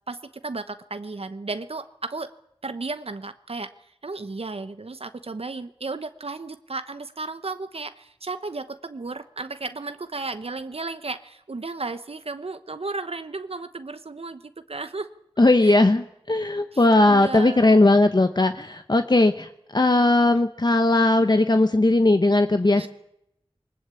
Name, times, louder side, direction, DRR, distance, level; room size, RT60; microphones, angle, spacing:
voice 1, 0.1-2.3 2.6-3.7 4.0-14.4 14.7-15.1 15.6-15.8 16.7-17.8 22.8-22.9, right 3 dB, 75° right, 10 dB, 1.0 m, -34 dB
voice 2, 15.4-22.9, left 2 dB, 45° left, 8 dB, 1.1 m, -18 dB
20.5 x 20.0 x 8.5 m, 0.77 s
wide cardioid pair, 55°, 10 cm